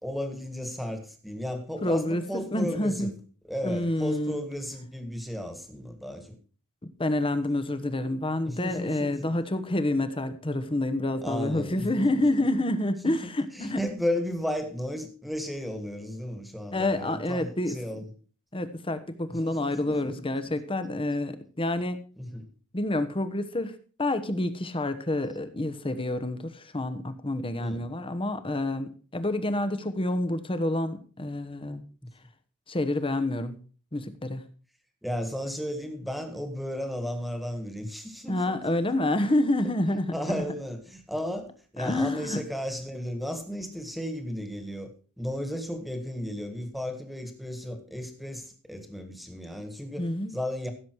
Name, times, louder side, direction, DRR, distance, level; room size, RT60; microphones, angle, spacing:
voice 1, 0.0-3.1 3.5-6.4 8.4-9.4 11.2-12.5 13.0-18.1 19.3-20.1 22.2-22.5 27.6-27.8 32.0-32.1 35.0-38.5 40.1-44.9 45.2-50.7, equal, ahead, 1.8 m, -34 dB
voice 2, 1.8-3.1 3.6-4.4 7.0-13.8 16.7-17.8 18.5-22.0 22.7-31.8 32.7-33.6 33.9-34.5 38.3-40.1 41.8-42.4 50.0-50.3, left 1 dB, 25° left, 1.1 m, -28 dB
15.5 x 7.2 x 4.6 m
head